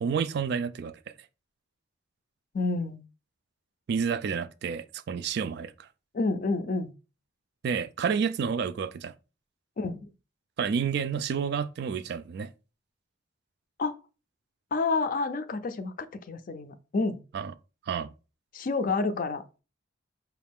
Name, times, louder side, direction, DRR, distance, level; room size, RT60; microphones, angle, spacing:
voice 1, 0.0-0.9 3.9-5.9 7.6-9.1 10.6-12.5 17.3-17.5 17.9-18.1, right 6 dB, 55° right, 0.3 m, -29 dB
voice 2, 2.5-3.0 6.1-6.9 9.8-10.0 13.8-14.0 14.7-15.9 16.3-17.2 18.5-19.6, left 3 dB, 45° left, 0.4 m, -29 dB
5.0 x 2.4 x 3.5 m
head